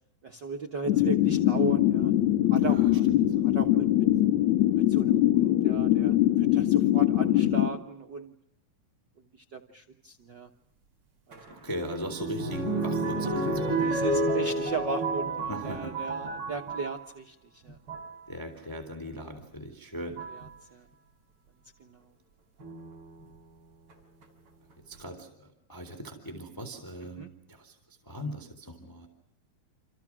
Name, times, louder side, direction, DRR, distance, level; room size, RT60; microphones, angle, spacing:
voice 1, 0.2-2.1 2.5-3.0 3.5-4.1 4.7-8.3 9.3-10.5 11.3-11.4 13.8-17.8 20.7-20.9 21.8-22.0 27.2-27.3, right 4 dB, 75° right, 4 dB, 1.0 m, -36 dB
sound 1, 0.9-7.7, left 14 dB, 60° left, 2.5 m, -23 dB
voice 2, 2.6-3.3 11.5-13.9 15.5-15.9 18.3-20.2 24.9-29.1, equal, 5° left, 3 dB, 3.2 m, -39 dB
sound 2, 11.3-17.0 17.7-18.1 19.4-19.5 20.2-20.5 22.6-23.2 23.9-24.0 24.2-24.3, right 2 dB, 35° right, 4.8 m, -31 dB
29.0 x 27.5 x 6.1 m, 0.71 s
omnidirectional pair, 4.1 m